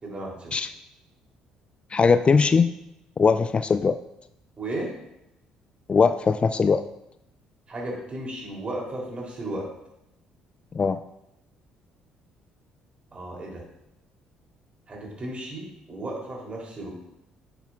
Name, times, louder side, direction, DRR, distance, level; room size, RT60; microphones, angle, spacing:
voice 1, 0.0-0.5 4.6-4.9 7.7-9.7 13.1-13.6 14.9-16.9, right 1 dB, 35° right, -2 dB, 3.4 m, -34 dB
voice 2, 1.9-2.7 3.2-4.0 5.9-6.8 10.7-11.0, left 5 dB, 35° left, 12 dB, 0.4 m, -20 dB
9.7 x 9.1 x 2.5 m, 0.85 s
hypercardioid pair, 50°, 3 cm